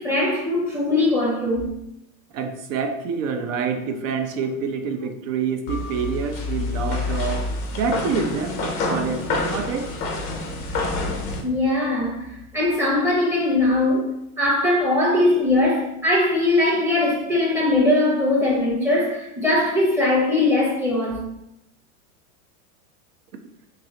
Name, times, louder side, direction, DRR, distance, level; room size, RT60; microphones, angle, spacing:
voice 1, 0.0-1.7 11.4-21.2, left 2 dB, 5° right, 0.8 m, -21 dB
voice 2, 2.3-7.5 7.7-9.9, right 5 dB, 65° right, 0.7 m, -27 dB
sound 1, 5.7-11.4, left 3 dB, 25° left, 0.4 m, -27 dB
6.0 x 2.0 x 2.7 m
supercardioid pair, 150°, 42 cm